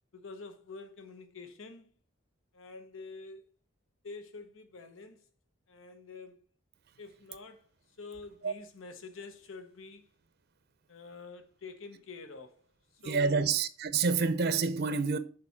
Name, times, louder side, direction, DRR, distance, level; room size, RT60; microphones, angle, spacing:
voice 1, 0.1-1.9 2.5-3.5 4.0-5.2 5.7-6.4 7.0-7.7 8.0-10.1 10.9-12.6 13.0-13.5, left 4 dB, 80° left, 1.0 m, -47 dB
voice 2, 13.0-15.2, right 4 dB, 55° right, 0.6 m, -28 dB
6.7 x 4.6 x 5.7 m
head